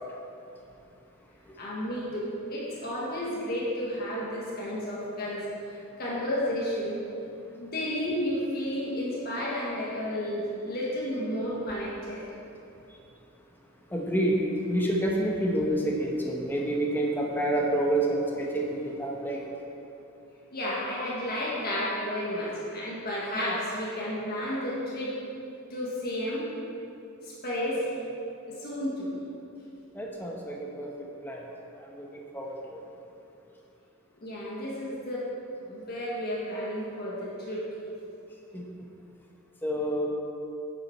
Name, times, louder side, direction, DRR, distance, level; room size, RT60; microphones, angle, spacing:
voice 1, 1.6-7.0 7.6-12.2 20.5-25.1 25.7-26.4 27.2-28.0 28.4-29.1 34.2-35.2 35.6-37.6, equal, 45° left, -7 dB, 1.5 m, -32 dB
voice 2, 13.9-14.4 14.7-19.4 29.9-30.9 31.2-31.4 31.8-32.8 38.5-38.7 39.6-40.1, right 1 dB, 10° left, -1 dB, 1.0 m, -28 dB
8.9 x 7.1 x 4.5 m, 2.7 s
head